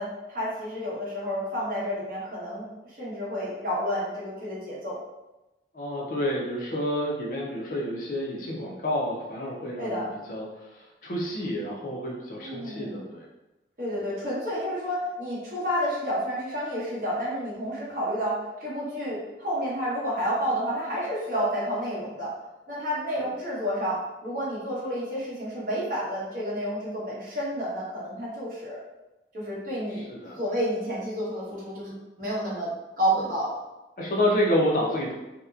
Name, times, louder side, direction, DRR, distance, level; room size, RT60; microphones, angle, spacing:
voice 1, 0.0-5.0 9.8-10.2 12.4-13.0 13.8-22.3 22.7-28.8 29.3-30.1 30.4-33.5, equal, 45° right, -6 dB, 0.8 m, -30 dB
voice 2, 5.7-13.3 23.2-23.3 29.9-30.4 34.0-35.1, left 1 dB, 50° left, -2 dB, 0.5 m, -29 dB
2.8 x 2.1 x 2.3 m, 1.0 s
head